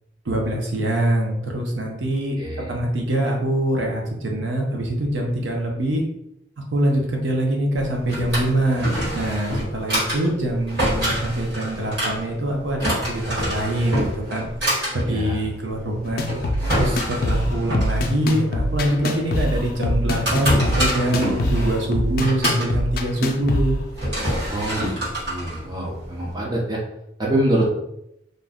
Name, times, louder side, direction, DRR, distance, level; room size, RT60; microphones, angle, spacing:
voice 1, 0.2-2.4 2.7-6.0 6.6-14.5 14.9-16.2 16.7-23.8, right 1 dB, 85° right, 0 dB, 0.7 m, -24 dB
voice 2, 2.4-2.8 15.1-15.4 24.5-26.8 27.2-27.7, right 1 dB, 20° right, -4 dB, 0.7 m, -25 dB
Drawer open or close, 7.8-26.3, equal, 70° right, 1.4 m, -27 dB
sound 1, 16.0-24.0, left 1 dB, 50° left, 0.4 m, -24 dB
2.5 x 2.2 x 3.5 m, 0.81 s
head